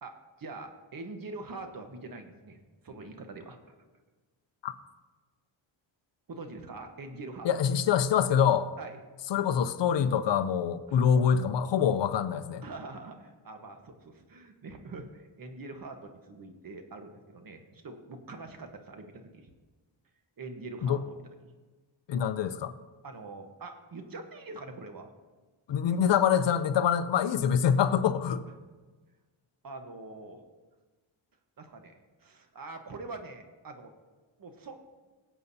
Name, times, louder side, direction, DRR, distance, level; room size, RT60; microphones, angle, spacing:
voice 1, 0.0-3.8 6.3-7.5 8.8-9.0 10.9-11.1 12.6-19.5 20.4-21.1 23.0-25.1 25.9-26.0 29.6-30.4 31.6-33.9 34.4-34.8, right 3 dB, 45° right, 6 dB, 1.2 m, -44 dB
voice 2, 7.4-8.7 9.3-12.6 20.8-21.0 22.1-22.7 25.7-28.4, left 8 dB, 65° left, 12 dB, 0.7 m, -25 dB
20.0 x 8.1 x 2.8 m, 1.3 s
cardioid pair, 115°, 48 cm